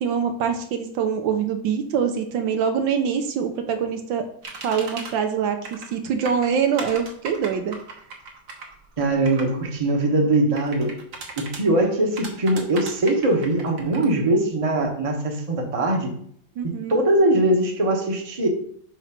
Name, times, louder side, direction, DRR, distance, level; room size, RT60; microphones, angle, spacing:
voice 1, 0.0-4.2 4.6-7.8 16.6-16.9, right 7 dB, 75° right, 6 dB, 1.5 m, -24 dB
sound 1, 4.4-5.1 5.6-5.9 6.3-9.5 10.6-11.6 12.2-14.1, right 4 dB, 60° right, 1.7 m, -37 dB
voice 2, 9.0-11.0 11.4-16.1 16.9-18.5, right 1 dB, 25° right, 2 dB, 0.9 m, -21 dB
5.1 x 4.4 x 5.8 m, 0.63 s
omnidirectional pair, 2.1 m